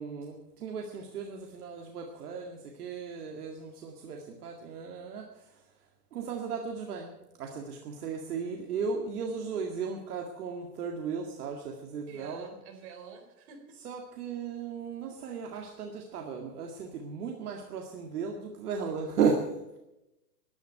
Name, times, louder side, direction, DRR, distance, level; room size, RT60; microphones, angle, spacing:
voice 1, 0.0-5.7 6.1-12.5 13.8-19.8, right 5 dB, 65° right, 2 dB, 2.1 m, -35 dB
voice 2, 12.1-13.7, right 6 dB, 40° right, 3 dB, 4.0 m, -48 dB
11.5 x 11.0 x 8.9 m, 0.93 s
hypercardioid pair, 150°, 50 cm